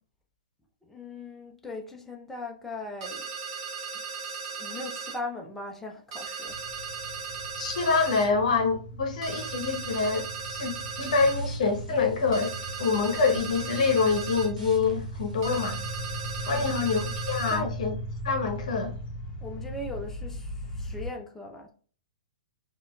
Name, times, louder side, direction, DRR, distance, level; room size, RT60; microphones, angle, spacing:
voice 1, 0.8-3.3 4.3-6.6 16.5-16.9 17.5-17.7 19.4-21.7, left 2 dB, 5° left, 0.5 m, -39 dB
sound 1, 3.0-5.2 6.1-8.3 9.2-11.4 12.3-14.5 15.4-17.6, right 5 dB, 45° right, 1.4 m, -37 dB
sound 2, 6.5-21.1, right 1 dB, 30° left, 1.0 m, -38 dB
voice 2, 7.6-10.7 11.0-12.5 12.8-15.8 16.5-17.9 18.2-18.9, left 4 dB, 60° left, 0.8 m, -26 dB
sound 3, 11.2-16.8, right 2 dB, 75° right, 1.1 m, -42 dB
4.1 x 2.4 x 2.3 m
figure-of-eight pair, 115°, 4 cm